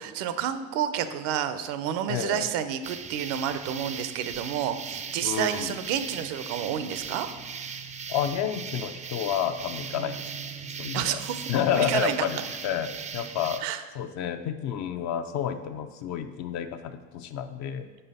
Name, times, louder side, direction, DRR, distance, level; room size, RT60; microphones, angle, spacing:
voice 1, 0.0-7.3 10.0-10.2 10.9-11.5 11.7-12.2 13.6-13.8, right 10 dB, 75° right, 11 dB, 0.6 m, -30 dB
voice 2, 2.1-2.5 5.2-5.8 8.1-11.2 11.5-13.6 13.9-17.9, left 9 dB, 55° left, 8 dB, 0.6 m, -30 dB
sound 1, 2.8-13.6, right 6 dB, 20° right, 0.4 m, -38 dB
5.5 x 4.9 x 4.1 m, 1.3 s
supercardioid pair, 80°, 33 cm